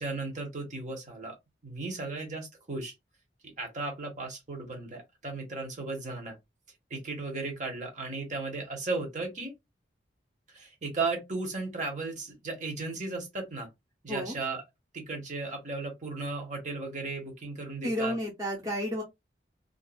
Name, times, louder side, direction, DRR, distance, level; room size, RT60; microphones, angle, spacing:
voice 1, 0.0-1.4 1.6-2.9 3.6-6.4 6.9-9.5 10.5-13.7 14.0-14.6 14.9-18.1, right 3 dB, 45° right, 1.0 m, -35 dB
voice 2, 17.8-19.0, equal, 20° right, 0.9 m, -31 dB
2.6 x 2.4 x 2.3 m
head